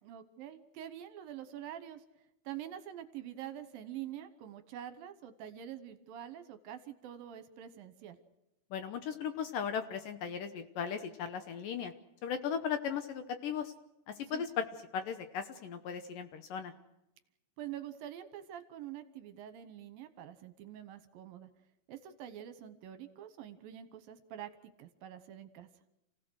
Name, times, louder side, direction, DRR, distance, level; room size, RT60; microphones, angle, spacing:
voice 1, 0.0-2.0 2.5-8.2 14.3-14.5 17.6-21.5 21.9-25.7, right 11 dB, 70° right, 10 dB, 2.5 m, -46 dB
voice 2, 8.7-11.9 12.2-13.7 14.1-14.7 14.9-16.7, left 7 dB, 70° left, 9 dB, 2.2 m, -37 dB
29.0 x 17.0 x 6.4 m, 0.89 s
omnidirectional pair, 4.8 m